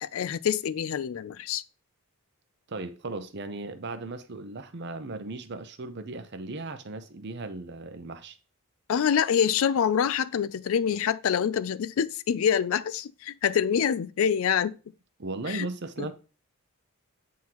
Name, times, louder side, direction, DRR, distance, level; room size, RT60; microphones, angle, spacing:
voice 1, 0.0-1.6 8.9-14.7 15.5-15.7 16.0-16.1, left 8 dB, 70° left, 0.3 m, -26 dB
voice 2, 2.7-8.4 15.2-16.1, right 2 dB, 50° right, 0.7 m, -36 dB
9.3 x 3.7 x 2.9 m
head